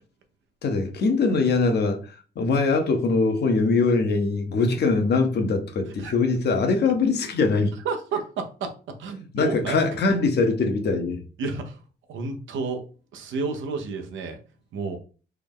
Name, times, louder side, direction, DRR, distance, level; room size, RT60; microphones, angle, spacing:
voice 1, 0.6-7.7 9.3-11.2, left 3 dB, 55° left, 0.8 m, -22 dB
voice 2, 7.8-8.7 9.0-9.8 11.4-11.8 12.1-12.9 13.1-14.4 14.7-15.0, right 4 dB, 75° right, 0.8 m, -30 dB
3.4 x 2.1 x 3.5 m
cardioid pair, 90°, 20 cm